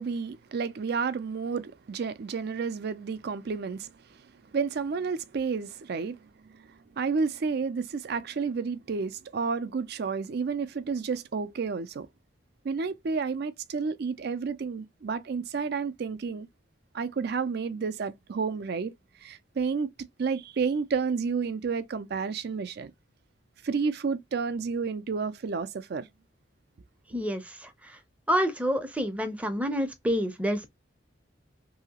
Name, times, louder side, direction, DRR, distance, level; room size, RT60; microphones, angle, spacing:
voice 1, 0.0-3.9 4.5-12.1 12.6-16.5 16.9-18.9 19.2-19.9 20.2-22.9 23.6-26.1, right 5 dB, 55° right, 0.4 m, -31 dB
voice 2, 27.1-28.0 28.3-30.7, equal, 5° right, 0.5 m, -28 dB
2.8 x 2.7 x 2.8 m
head